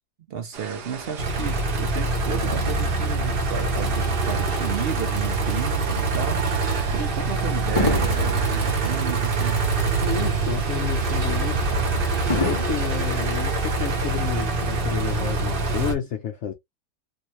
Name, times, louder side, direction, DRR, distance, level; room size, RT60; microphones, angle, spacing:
voice 1, 0.3-9.6, right 7 dB, 65° right, 0.6 m, -33 dB
sound 1, 0.5-15.9, right 5 dB, 90° right, 1.5 m, -38 dB
sound 2, 1.2-15.9, right 3 dB, 40° right, 0.9 m, -24 dB
Fireworks, 2.4-5.0 5.7-5.9 7.8-10.3 10.6-10.7 12.3-14.2 14.9-15.0, left 2 dB, 30° left, 0.5 m, -32 dB
voice 2, 10.0-11.7 12.3-16.5, left 8 dB, 65° left, 0.7 m, -30 dB
3.1 x 2.7 x 3.0 m
omnidirectional pair, 1.7 m